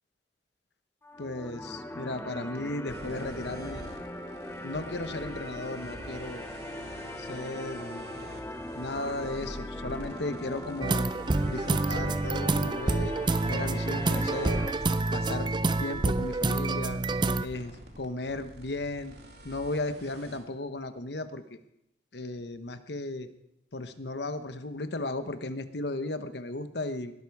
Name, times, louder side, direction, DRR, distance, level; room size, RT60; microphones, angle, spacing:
sound 1, 1.0-14.7, left 1 dB, 15° left, 1.1 m, -40 dB
voice 1, 1.2-3.8 4.6-6.5 7.3-8.1 8.8-11.0 11.4-13.1 13.4-14.7 15.1-15.5 15.8-17.0 17.4-19.1 19.4-21.4 22.1-23.3 23.7-27.1, left 2 dB, 70° left, 10 dB, 1.1 m, -35 dB
sound 2, 2.9-20.4, right 1 dB, 70° right, 2.5 m, -46 dB
sound 3, 10.8-17.5, right 2 dB, 25° right, 0.5 m, -28 dB
21.0 x 12.0 x 4.8 m, 0.85 s
head